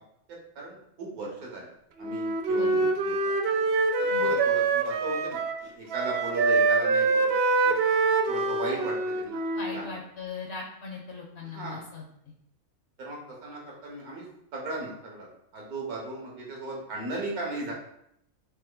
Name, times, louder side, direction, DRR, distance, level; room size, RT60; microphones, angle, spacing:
voice 1, 0.3-1.7 2.0-3.3 4.0-5.4 5.7-7.3 7.6-7.8 8.3-9.4 9.7-10.0 11.5-11.8 13.0-14.3 14.5-15.3 15.5-17.7, right 2 dB, 75° right, -2 dB, 1.7 m, -36 dB
Wind instrument woodwind instrument, 2.0-5.7 5.9-9.8, right 3 dB, 90° right, 0.5 m, -25 dB
voice 2, 9.5-12.0, left 3 dB, 55° left, 0 dB, 1.0 m, -39 dB
4.5 x 3.1 x 3.8 m, 0.74 s
omnidirectional pair, 1.6 m